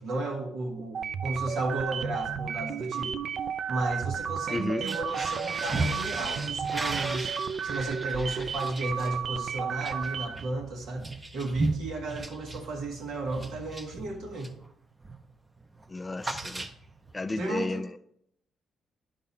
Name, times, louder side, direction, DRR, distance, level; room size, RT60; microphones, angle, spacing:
voice 1, 0.0-3.1 3.7-7.4 7.6-14.5 17.4-17.8, right 2 dB, 75° right, 1.6 m, -34 dB
sound 1, 0.9-10.5, right 7 dB, 55° right, 0.4 m, -33 dB
voice 2, 4.5-4.9 15.9-16.7 17.1-18.0, left 2 dB, 20° left, 0.3 m, -32 dB
sound 2, 4.8-14.7 15.0-15.3 15.6-17.1, right 2 dB, 20° right, 0.7 m, -36 dB
10.5 x 3.9 x 4.1 m
cardioid pair, 100°, 0 cm